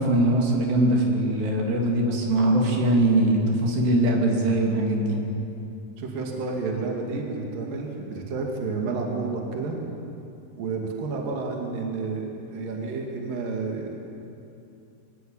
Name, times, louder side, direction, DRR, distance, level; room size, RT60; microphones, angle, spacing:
voice 1, 0.0-5.2, right 1 dB, 85° right, 0 dB, 5.2 m, -21 dB
voice 2, 6.0-9.8 10.6-14.0, right 4 dB, 60° right, 0 dB, 3.9 m, -30 dB
24.0 x 20.0 x 8.8 m, 2.7 s
omnidirectional pair, 4.7 m